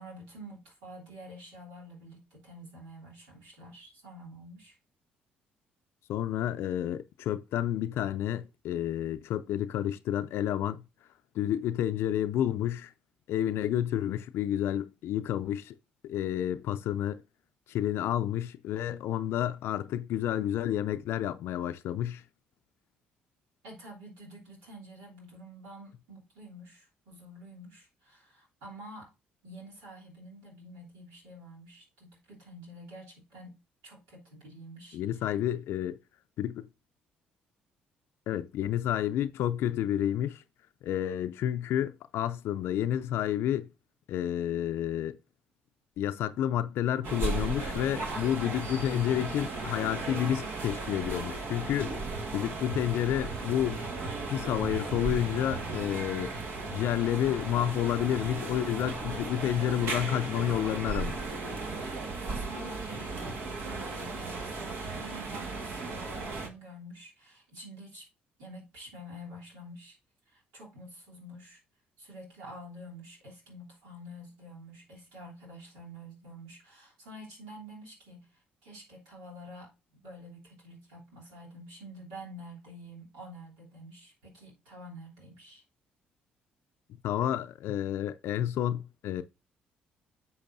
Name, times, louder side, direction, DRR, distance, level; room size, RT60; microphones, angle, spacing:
voice 1, 0.0-4.8 23.6-29.1 29.4-35.3 62.3-68.1 68.4-70.0 70.3-71.6 72.0-78.3 78.6-85.6, equal, 85° right, 3.2 m, -48 dB
voice 2, 6.1-10.8 11.3-12.9 13.3-15.7 16.0-17.2 17.7-22.2 34.9-36.0 36.4-36.7 38.3-40.4 40.8-43.7 44.1-45.2 46.0-52.0 52.3-53.8 54.3-56.3 56.7-61.3 87.0-89.2, left 11 dB, 70° left, 0.4 m, -30 dB
sound 1, 47.0-66.5, right 3 dB, 65° right, 1.8 m, -36 dB
10.5 x 6.4 x 2.7 m
hypercardioid pair, 55°, 4 cm